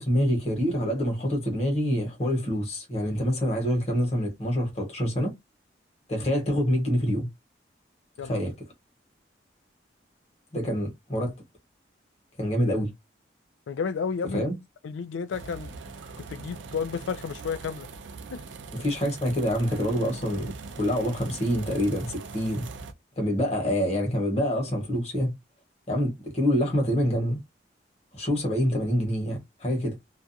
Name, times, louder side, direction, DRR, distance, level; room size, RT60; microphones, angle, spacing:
voice 1, 0.0-5.3 6.1-7.3 8.3-8.5 10.5-11.3 12.4-12.9 14.3-14.5 18.7-22.7 23.2-25.3 25.9-27.4 28.1-30.0, equal, 35° left, 1.2 m, -26 dB
voice 2, 13.7-14.4 14.8-15.7 16.2-17.9 18.3-18.4, left 6 dB, 85° left, 0.3 m, -32 dB
sound 1, 15.3-22.9, right 4 dB, 80° right, 0.5 m, -41 dB
2.5 x 2.2 x 2.7 m
head